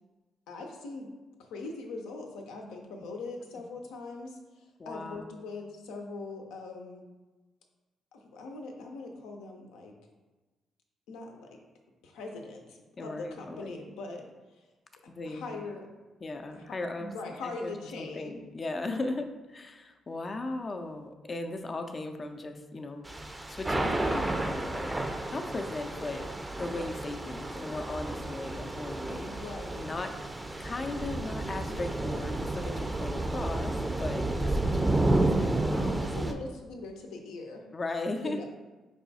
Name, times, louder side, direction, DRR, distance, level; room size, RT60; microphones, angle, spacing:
voice 1, 0.5-1.1 1.4-4.4 4.9-7.0 8.1-9.9 11.1-11.6 12.0-14.3 15.3-15.9 16.5-16.7 17.0-18.4 29.2-29.8 36.0-37.6 38.2-38.4, left 3 dB, 85° left, 2 dB, 0.6 m, -41 dB
voice 2, 4.8-5.3 13.0-13.7 15.1-15.6 16.2-17.1 17.4-23.1 23.5-24.9 25.3-26.3 26.6-29.4 29.8-30.1 30.6-36.2 37.7-38.4, left 2 dB, 40° left, 5 dB, 0.4 m, -37 dB
Thunder / Rain, 23.0-36.3, right 2 dB, 15° right, 0.5 m, -31 dB
4.8 x 2.3 x 4.0 m, 1.2 s
supercardioid pair, 60°, 0 cm